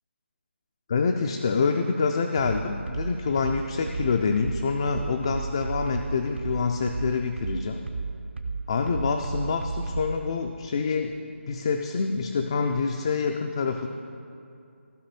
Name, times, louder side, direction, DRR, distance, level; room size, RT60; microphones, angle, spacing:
voice 1, 0.9-7.8 8.7-11.1 11.5-13.9, left 5 dB, 25° left, 4 dB, 0.3 m, -26 dB
sound 1, 2.4-10.2, right 4 dB, 65° right, 0.8 m, -32 dB
15.0 x 5.2 x 4.2 m, 2.5 s
figure-of-eight pair, 165°, 7 cm